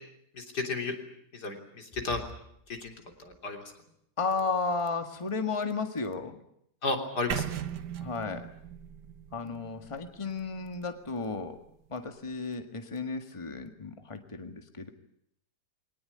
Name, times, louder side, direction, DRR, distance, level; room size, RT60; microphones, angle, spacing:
voice 1, 0.4-0.9 1.4-2.2 2.7-2.9 3.2-3.6 6.8-7.4, left 3 dB, 80° left, 4 dB, 4.0 m, -33 dB
voice 2, 4.2-6.4 8.0-8.5 9.3-11.6 11.9-14.9, left 4 dB, 20° left, 7 dB, 1.8 m, -33 dB
sound 1, 7.3-11.3, right 9 dB, 90° right, 1.8 m, -38 dB
23.0 x 19.0 x 9.8 m, 0.73 s
omnidirectional pair, 1.7 m